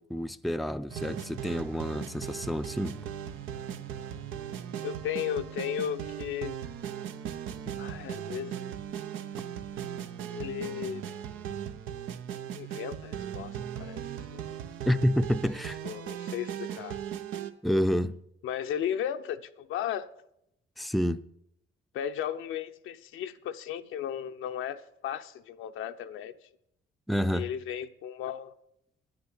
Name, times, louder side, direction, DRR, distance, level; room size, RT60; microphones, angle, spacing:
voice 1, 0.0-3.0 14.9-15.8 17.6-18.2 20.8-21.2 27.1-27.5, equal, ahead, 0.5 m, -28 dB
sound 1, 0.9-17.5, right 9 dB, 90° right, 0.9 m, -38 dB
voice 2, 4.8-6.6 7.8-8.5 10.3-11.0 12.5-14.0 14.3-14.4 15.8-17.0 18.4-20.1 21.9-26.3 27.3-28.5, left 10 dB, 85° left, 0.8 m, -35 dB
9.9 x 8.7 x 9.8 m
cardioid pair, 90°, 20 cm